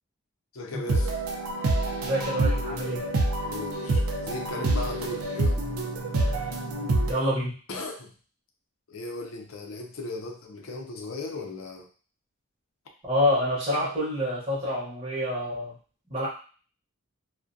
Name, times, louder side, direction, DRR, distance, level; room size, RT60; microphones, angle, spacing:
voice 1, 0.5-1.1 3.4-5.6 7.7-8.1 8.9-11.9, left 3 dB, 75° left, 2 dB, 0.5 m, -36 dB
sound 1, 0.9-7.1, right 2 dB, 90° right, 0.4 m, -27 dB
voice 2, 2.0-3.0 7.1-7.6 13.0-15.8 16.1-16.3, left 1 dB, 30° right, -7 dB, 0.7 m, -27 dB
2.3 x 2.1 x 2.5 m, 0.39 s
head